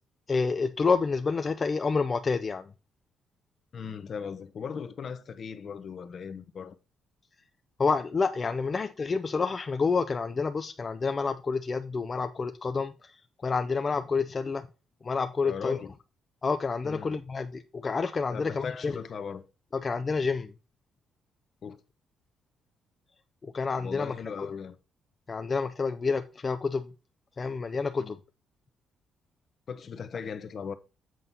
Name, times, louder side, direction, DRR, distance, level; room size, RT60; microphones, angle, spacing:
voice 1, 0.3-2.7 7.8-14.7 15.0-15.8 16.4-19.0 19.7-20.5 23.4-24.5 25.3-26.9 27.4-28.2, left 4 dB, 35° left, 0.5 m, -29 dB
voice 2, 3.7-6.8 15.4-15.9 16.8-17.2 18.3-19.4 21.6-21.8 23.8-24.8 28.0-28.2 29.7-30.7, left 6 dB, 55° left, 0.9 m, -38 dB
7.7 x 4.2 x 5.3 m
cardioid pair, 90°, 0 cm